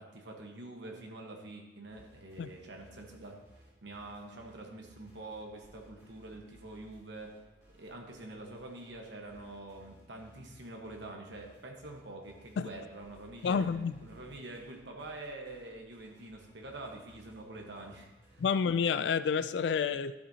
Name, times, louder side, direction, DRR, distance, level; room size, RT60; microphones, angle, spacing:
voice 1, 0.0-7.3 7.7-13.7 14.0-18.4, right 2 dB, 65° right, 2 dB, 1.3 m, -46 dB
sound 1, 1.9-18.7, equal, 15° right, 3.2 m, -61 dB
voice 2, 13.4-13.9 18.4-20.2, left 6 dB, 65° left, 14 dB, 0.3 m, -29 dB
11.5 x 7.7 x 2.8 m, 1.1 s
head